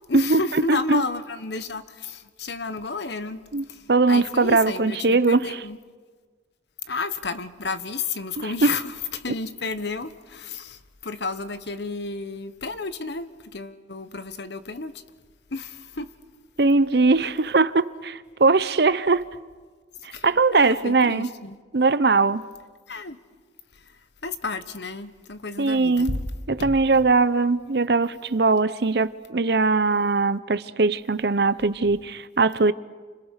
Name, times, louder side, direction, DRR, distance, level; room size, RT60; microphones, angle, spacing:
voice 1, 0.1-5.8 6.8-15.0 15.5-16.1 20.0-21.6 22.9-23.2 23.7-26.2 26.6-27.0 31.8-31.9, left 3 dB, 65° left, 1.2 m, -32 dB
voice 2, 0.7-1.0 3.5-5.6 8.6-8.7 16.6-19.3 20.0-21.3 21.7-22.4 25.6-26.2 26.5-32.7, right 3 dB, 60° right, 0.7 m, -20 dB
29.5 x 26.0 x 6.5 m
head